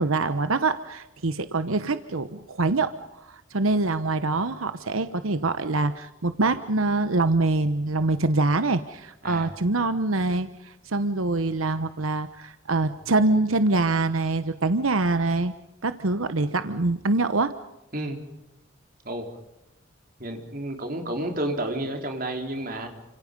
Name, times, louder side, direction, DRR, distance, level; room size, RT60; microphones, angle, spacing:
voice 1, 0.0-15.5 15.8-17.5, right 2 dB, 90° right, 11 dB, 1.1 m, -24 dB
voice 2, 20.2-22.9, right 1 dB, 45° right, 3 dB, 4.1 m, -31 dB
30.0 x 27.0 x 5.4 m, 0.90 s
head